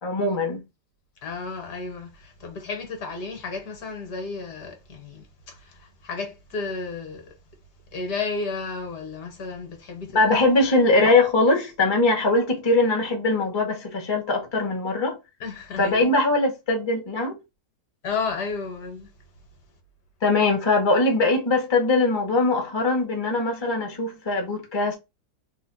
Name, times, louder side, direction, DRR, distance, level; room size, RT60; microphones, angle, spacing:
voice 1, 0.0-0.6 10.1-15.2 15.8-17.3 20.2-25.0, left 2 dB, 40° left, 0.3 m, -21 dB
voice 2, 1.2-7.3 7.9-10.2 15.4-16.1 18.0-19.1, left 4 dB, 60° left, 1.4 m, -32 dB
3.2 x 2.2 x 3.8 m
omnidirectional pair, 2.0 m